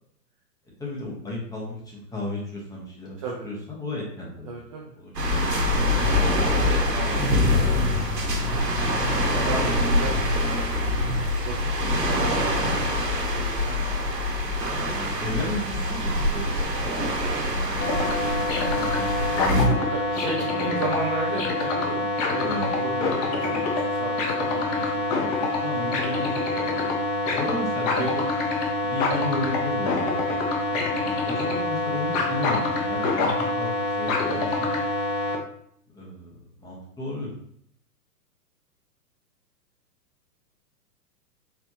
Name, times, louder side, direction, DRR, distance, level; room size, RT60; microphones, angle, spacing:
voice 1, 0.8-3.2 3.4-4.6 5.0-5.4 12.6-12.7 14.9-17.1 17.5-19.7 20.1-20.9 22.4-22.7 25.6-26.5 27.1-28.3 28.9-30.3 31.0-33.7 34.0-34.8 35.9-36.3 36.6-37.3, left 1 dB, 10° left, -5 dB, 1.1 m, -34 dB
voice 2, 4.5-4.9 5.2-7.8 8.2-8.7 9.4-10.6 10.9-14.7 15.5-15.6 19.9-25.4 25.9-26.1 27.2-27.5 28.0-28.4 30.7-31.1, right 3 dB, 25° right, -2 dB, 0.4 m, -36 dB
sound 1, 5.1-19.7, left 1 dB, 85° right, 1.2 m, -24 dB
sound 2, 17.8-35.4, left 3 dB, 25° left, 0.6 m, -26 dB
4.6 x 3.3 x 2.7 m, 0.67 s
figure-of-eight pair, 115°, 48 cm